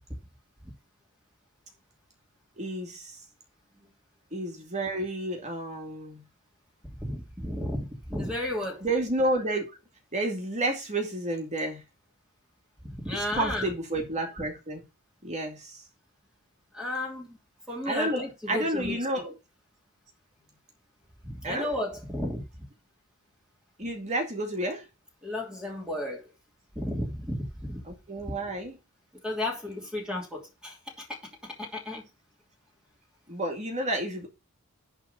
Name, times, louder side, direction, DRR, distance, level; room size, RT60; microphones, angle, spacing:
voice 1, 2.6-3.2 4.3-6.2 8.8-9.7 10.1-11.8 13.1-14.8 15.2-15.8 17.8-19.3 21.4-21.7 23.8-24.8 27.9-28.8 33.3-34.3, right 1 dB, 30° right, 2.3 m, -30 dB
voice 2, 7.0-8.8 12.9-13.7 16.7-17.4 17.7-19.3 21.2-22.6 25.2-26.3 26.7-27.8 29.2-32.0, left 1 dB, 5° right, 2.9 m, -33 dB
10.5 x 3.8 x 6.9 m
head